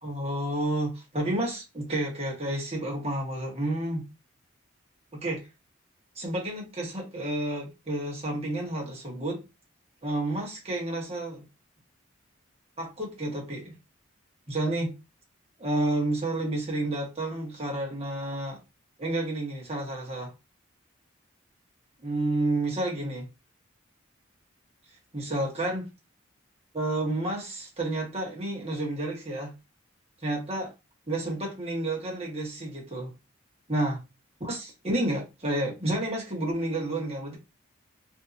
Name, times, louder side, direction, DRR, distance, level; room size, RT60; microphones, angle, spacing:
voice 1, 0.0-4.1 5.1-5.5 6.1-9.4 10.0-11.4 12.8-13.7 14.5-15.0 15.6-18.6 19.0-20.3 22.0-23.3 25.1-25.9 26.7-29.5 30.2-30.7 31.1-33.1 33.7-34.0 34.4-37.4, right 1 dB, 30° right, 1.3 m, -30 dB
3.4 x 2.7 x 2.6 m
head